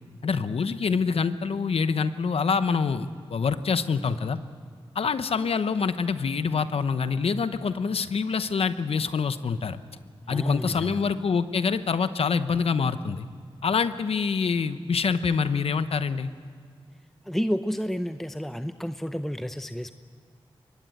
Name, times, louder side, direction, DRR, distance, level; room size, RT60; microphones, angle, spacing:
voice 1, 0.2-4.4 4.9-9.8 10.3-13.2 13.6-16.3, left 5 dB, 80° left, 12 dB, 0.9 m, -26 dB
voice 2, 10.3-11.0 17.2-19.9, equal, 5° left, 9 dB, 0.7 m, -30 dB
23.5 x 20.0 x 7.8 m, 2.1 s
cardioid pair, 55°, 10 cm